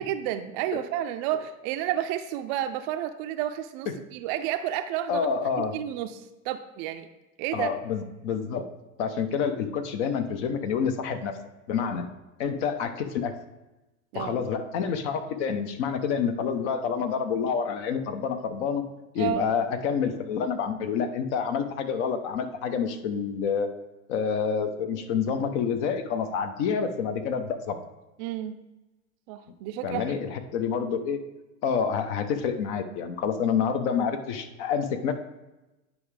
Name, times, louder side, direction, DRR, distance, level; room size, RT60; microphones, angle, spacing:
voice 1, 0.0-5.3 5.6-7.1 7.4-7.7 14.1-14.3 19.2-19.5 28.2-28.6 29.3-30.1, right 11 dB, 40° right, 9 dB, 0.5 m, -31 dB
voice 2, 5.1-5.7 7.5-8.7 9.0-11.4 11.7-12.1 12.4-13.3 14.1-18.9 19.1-23.7 24.1-27.8 29.8-31.2 31.6-35.1, left 6 dB, 55° left, 8 dB, 1.0 m, -28 dB
9.7 x 5.0 x 3.3 m, 1.0 s
hypercardioid pair, 110°, 42 cm